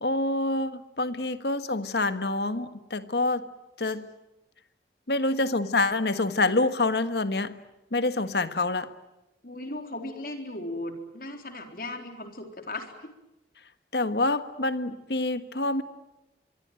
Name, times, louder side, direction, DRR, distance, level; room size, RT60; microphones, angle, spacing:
voice 1, 0.0-3.4 3.8-4.1 5.1-7.6 7.9-8.9 13.9-15.8, left 2 dB, 75° left, 11 dB, 1.5 m, -26 dB
voice 2, 9.4-13.1, left 1 dB, 55° left, 5 dB, 3.9 m, -37 dB
25.5 x 23.0 x 9.1 m, 0.95 s
head